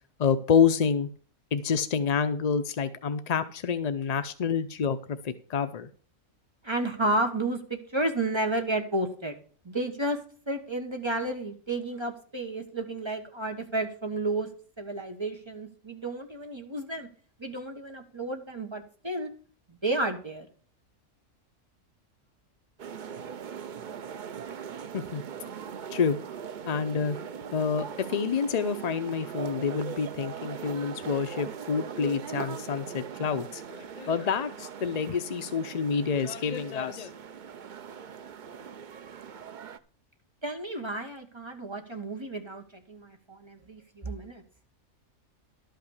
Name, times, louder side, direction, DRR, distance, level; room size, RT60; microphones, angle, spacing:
voice 1, 0.2-1.1 1.5-5.9 24.9-25.2 25.9-26.2 26.6-27.2 27.5-37.1, left 6 dB, 55° left, 10 dB, 0.4 m, -28 dB
voice 2, 6.6-9.4 9.6-10.2 10.5-14.5 14.8-17.1 17.4-19.3 19.8-20.5 40.4-44.4, right 2 dB, 20° right, 4 dB, 1.3 m, -32 dB
sound 1, 22.8-39.8, right 7 dB, 50° right, 0.6 m, -40 dB
12.0 x 5.8 x 6.4 m, 0.42 s
omnidirectional pair, 1.4 m